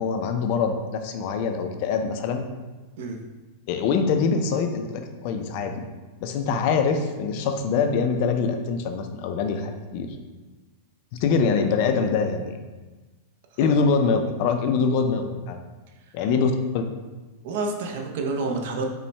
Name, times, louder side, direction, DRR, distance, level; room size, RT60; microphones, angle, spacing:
voice 1, 0.0-2.4 3.7-5.9 6.2-10.1 11.1-12.6 13.6-15.6 16.1-16.8, left 5 dB, 45° left, 6 dB, 0.4 m, -24 dB
voice 2, 17.4-18.9, right 3 dB, 60° right, 2 dB, 0.5 m, -28 dB
5.3 x 2.1 x 3.2 m, 1.2 s
supercardioid pair, 160°, 0 cm